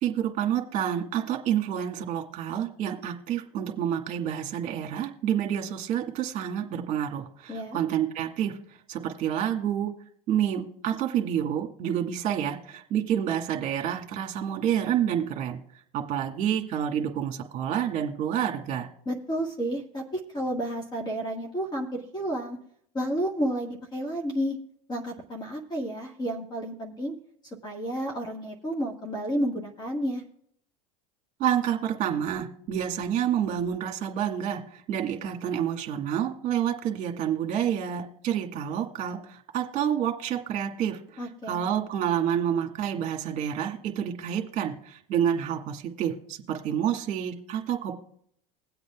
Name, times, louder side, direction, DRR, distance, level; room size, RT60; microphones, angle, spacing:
voice 1, 0.0-9.9 10.3-15.6 15.9-18.9 31.4-47.9, right 9 dB, 45° right, 3 dB, 1.7 m, -28 dB
voice 2, 19.0-20.0 20.3-22.6 22.9-24.6 24.9-27.1 27.6-30.2 41.2-41.7, equal, 25° left, 1 dB, 1.6 m, -31 dB
21.5 x 8.0 x 2.4 m, 0.67 s
supercardioid pair, 115°, 18 cm